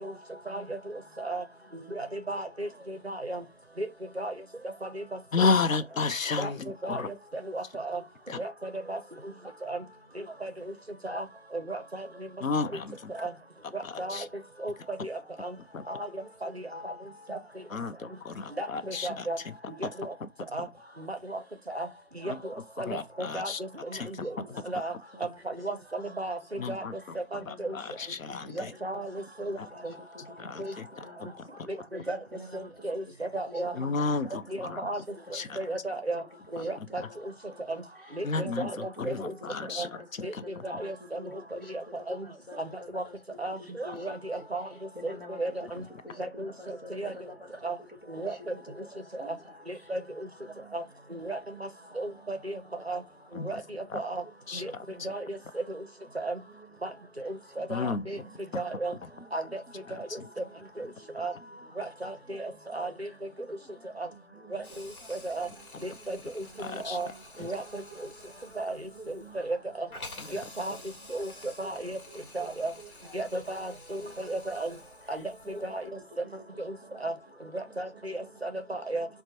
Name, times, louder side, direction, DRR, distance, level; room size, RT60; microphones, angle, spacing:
voice 1, 1.7-3.4 3.8-3.9 4.2-4.3 4.8-5.0 5.4-5.5 6.4-6.5 6.8-7.0 7.5-8.0 8.4-8.5 8.9-9.0 9.6-9.8 10.4-10.5 11.0-11.2 11.5-12.1 13.1-13.3 13.7-14.2 14.6-14.7 15.0-15.1 15.4-15.5 15.9-16.0 16.4-16.5 16.8-16.9 17.3-17.4 18.6-19.4 20.0-20.1 20.5-20.7 21.1-21.4 21.7-21.9 22.2-22.3 22.8-23.7 24.1-24.3 24.7-24.9 25.5-26.8 27.3-27.7 28.6-29.6 29.8-29.9 30.6-30.7 31.7-32.2 32.5-33.0 33.3-33.7 34.5-35.0 35.6-36.2 36.5-37.0 37.7-37.8 38.1-39.3 39.8-39.9 40.2-40.3 40.6-41.2 42.1-42.3 42.6-42.7 42.9-43.0 43.4-44.7 45.0-45.8 46.2-46.5 46.9-47.1 47.6-47.8 48.1-48.3 49.2-49.3 49.7-50.0 50.7-50.8 51.1-51.4 52.0-52.6 52.9-53.0 53.5-53.6 53.9-54.2 54.5-54.7 55.0-55.4 56.2-56.4 56.8-56.9 57.2-58.2 58.5-58.9 59.3-59.6 61.2-61.3 61.8-63.1 64.0-64.1 64.5-64.6 65.1-65.5 66.1-67.1 67.4-67.8 68.6-68.7 69.4-69.9 70.3-70.8 71.1-71.3 71.6-72.0 72.3-72.7 73.1-74.7 75.1-75.2 75.5-75.8 76.6-76.8 77.0-77.1 77.5-78.1 78.4-79.1, right 2 dB, 50° right, 0.5 m, -34 dB
voice 2, 5.3-7.1 8.3-8.4 12.4-13.1 13.8-14.3 15.7-15.8 17.7-19.5 19.8-19.9 22.3-22.4 22.9-23.6 23.9-24.3 26.6-27.2 27.5-28.7 29.6-29.7 30.4-30.9 31.2-31.7 33.8-34.9 35.3-35.6 36.6-36.7 37.0-37.1 38.2-39.9 40.2-40.4 53.3-53.5 53.9-54.0 54.5-54.8 57.7-58.1 58.5-58.6 59.9-60.3 65.7-65.8 66.6-67.0 70.2-70.3, left 4 dB, 70° left, 0.5 m, -32 dB
voice 3, 24.1-26.4 26.8-26.9 27.4-27.8 28.4-30.7 31.0-31.6 32.3-32.7 33.5-36.0 36.5-36.7 37.1-37.6 38.3-38.9 39.4-41.7 42.2-43.1 43.8-44.4 44.9-45.4 46.0-47.5 48.2-48.3 48.9-49.5 50.5-50.7 51.9-52.0 56.2-56.3 57.8-58.6 60.2-60.3 61.0-61.1 62.3-62.4 62.7-62.9 63.6-69.4 69.9-70.0 70.7-70.9 71.2-71.3 71.6-72.5 72.8-73.2 73.6-73.8 74.0-74.4 74.6-74.8 75.5-75.6 76.9-77.2 77.5-77.8 78.2-78.6, equal, 40° left, 0.8 m, -50 dB
Hiss, 64.6-75.9, left 2 dB, 85° left, 1.1 m, -50 dB
4.2 x 2.1 x 2.8 m
figure-of-eight pair, 175°, 42 cm